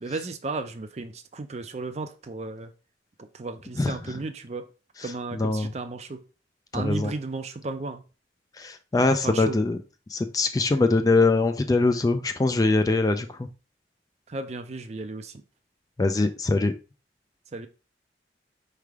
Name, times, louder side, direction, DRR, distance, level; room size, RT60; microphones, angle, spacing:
voice 1, 0.0-2.7 3.2-4.6 5.0-6.2 6.7-8.0 9.2-9.6 14.3-15.4 17.5-17.7, right 3 dB, 40° right, 0.5 m, -34 dB
voice 2, 5.3-5.7 6.7-7.1 8.6-9.8 10.1-13.5 16.0-16.7, left 3 dB, 20° left, 0.3 m, -23 dB
4.7 x 3.3 x 3.4 m
head